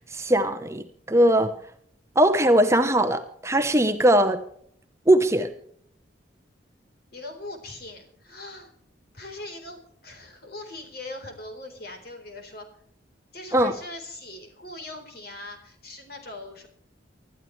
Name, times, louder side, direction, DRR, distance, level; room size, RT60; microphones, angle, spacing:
voice 1, 0.1-1.5 2.2-4.4 5.1-5.5 13.5-13.7, right 1 dB, 15° right, 6 dB, 0.9 m, -20 dB
voice 2, 7.1-8.7 9.1-12.7 13.3-16.7, left 2 dB, 55° left, 4 dB, 4.1 m, -40 dB
24.5 x 12.5 x 3.3 m, 0.63 s
head